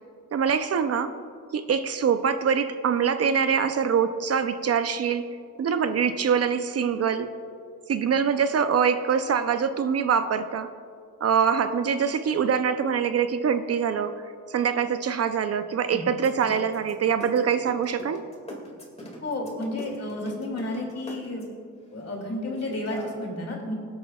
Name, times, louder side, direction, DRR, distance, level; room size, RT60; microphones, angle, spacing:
voice 1, 0.3-1.1 1.5-5.2 5.6-7.3 7.9-10.7 11.2-14.2 14.5-18.2, right 7 dB, 50° right, 10 dB, 0.5 m, -24 dB
sound 1, 16.1-21.6 22.4-23.1, left 1 dB, 20° left, 2.0 m, -41 dB
voice 2, 19.2-21.4 21.9-23.7, left 1 dB, 50° left, 0 dB, 2.4 m, -31 dB
20.5 x 8.7 x 2.3 m, 2.3 s
cardioid pair, 95°, 32 cm